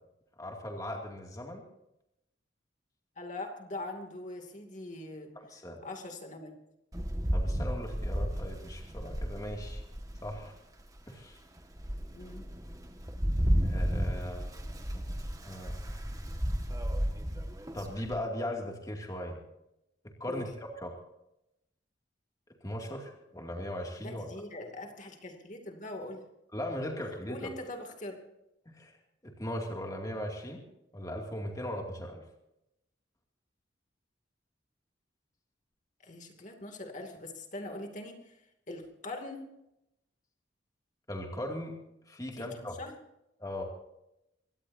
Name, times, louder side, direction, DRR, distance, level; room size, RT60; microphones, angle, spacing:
voice 1, 0.4-1.6 5.4-5.8 7.3-9.8 10.2-10.5 11.1-11.4 13.6-14.5 14.9-15.1 15.5-15.9 17.7-19.4 20.2-20.9 22.6-24.3 26.5-27.5 28.7-28.9 29.2-30.6 30.9-32.2 41.1-41.7 42.1-42.7 43.4-43.6, left 1 dB, 20° left, 0 dB, 2.5 m, -38 dB
voice 2, 3.2-5.3 5.8-6.6 12.1-12.4 20.3-20.4 24.0-26.2 27.3-28.2 36.0-38.4 38.7-39.4 42.3-42.9, left 2 dB, 40° left, 3 dB, 2.6 m, -42 dB
Rain, 6.9-10.4 11.0-11.1 11.6-18.2, equal, 20° right, 1.7 m, -33 dB
24.5 x 18.0 x 2.8 m, 0.84 s
head